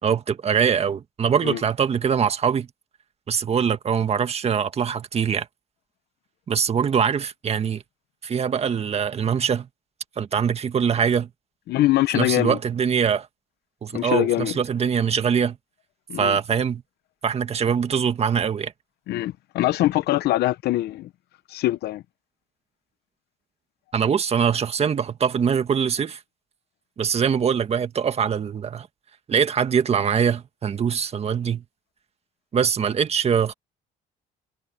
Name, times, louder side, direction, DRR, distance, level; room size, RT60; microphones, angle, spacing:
voice 1, 0.0-2.7 3.3-5.5 6.5-7.8 8.2-9.7 10.2-11.3 12.1-13.3 13.8-15.6 16.2-16.8 17.2-18.7 23.9-26.2 27.0-28.9 29.3-31.6 32.5-33.5, right 7 dB, 35° right, 1.8 m, -23 dB
voice 2, 11.7-12.6 13.9-14.5 16.1-16.4 19.1-21.1 21.5-22.0, left 15 dB, 75° left, 0.9 m, -23 dB
cardioid pair, 110°, 17 cm